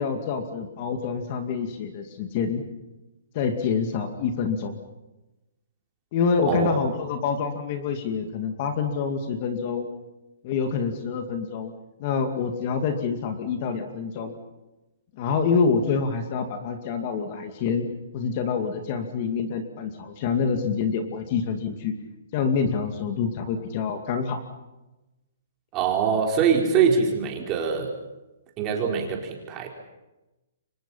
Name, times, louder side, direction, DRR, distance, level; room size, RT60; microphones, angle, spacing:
voice 1, 0.0-2.6 3.3-4.8 6.1-9.9 10.4-11.7 12.0-14.4 15.2-17.9 18.1-21.9 22.3-24.4, left 5 dB, 35° left, 6 dB, 2.4 m, -26 dB
voice 2, 6.5-6.8 25.7-27.9 28.6-29.7, right 6 dB, 20° right, 1 dB, 4.5 m, -23 dB
30.0 x 25.0 x 5.7 m, 1.0 s
hypercardioid pair, 165°, 0 cm